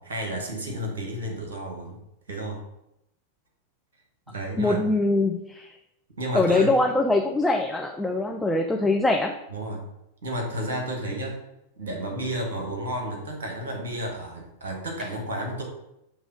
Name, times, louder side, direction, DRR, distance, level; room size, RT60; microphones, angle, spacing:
voice 1, 0.0-2.0 2.3-2.6 4.3-4.8 6.2-6.8 9.5-9.9 10.2-11.4 11.8-15.6, right 1 dB, 60° right, 1 dB, 1.6 m, -31 dB
voice 2, 4.6-5.7 6.3-9.3, left 2 dB, 5° left, 2 dB, 0.5 m, -23 dB
7.7 x 3.1 x 5.3 m, 0.85 s
figure-of-eight pair, 90°, 0 cm